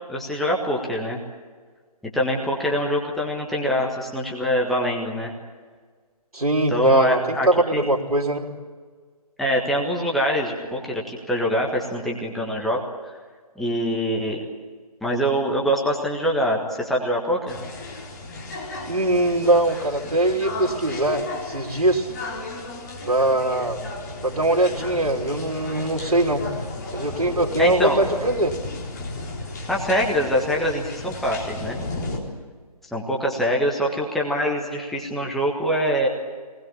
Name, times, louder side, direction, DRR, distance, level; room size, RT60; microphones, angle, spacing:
voice 1, 0.1-1.2 2.1-5.3 6.7-7.5 7.7-7.8 9.4-12.8 13.6-14.4 15.0-17.6 27.6-28.0 29.7-31.8 32.9-36.1, equal, ahead, -2 dB, 1.5 m, -24 dB
voice 2, 6.3-8.5 18.9-22.1 23.1-23.8 24.2-26.4 26.9-28.5, right 1 dB, 65° right, -2 dB, 3.2 m, -22 dB
sound 1, 17.5-32.2, left 2 dB, 25° left, 3.9 m, -34 dB
24.5 x 19.5 x 8.8 m, 1.5 s
figure-of-eight pair, 145°, 20 cm